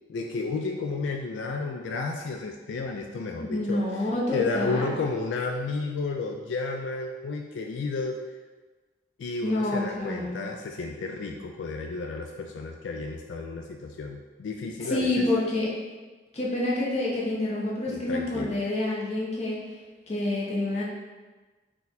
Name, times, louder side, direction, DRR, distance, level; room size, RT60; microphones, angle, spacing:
voice 1, 0.1-8.2 9.2-15.3 17.9-18.6, left 3 dB, 80° left, 3 dB, 0.3 m, -32 dB
voice 2, 3.4-4.9 9.4-10.5 14.8-15.7 16.3-19.6 20.1-20.8, left 2 dB, 35° left, -5 dB, 0.8 m, -28 dB
4.1 x 2.3 x 4.0 m, 1.3 s
head